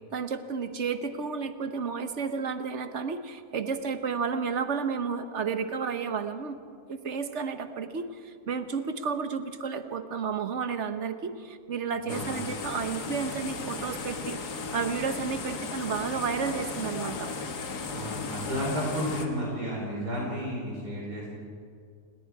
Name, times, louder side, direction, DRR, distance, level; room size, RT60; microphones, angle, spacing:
voice 1, 0.0-6.6 6.9-17.3, right 5 dB, 50° right, 9 dB, 1.3 m, -32 dB
sound 1, 12.1-19.3, left 4 dB, 80° left, 2.0 m, -36 dB
voice 2, 17.9-21.3, equal, 85° right, -3 dB, 5.0 m, -32 dB
29.0 x 20.0 x 4.8 m, 2.2 s
omnidirectional pair, 1.7 m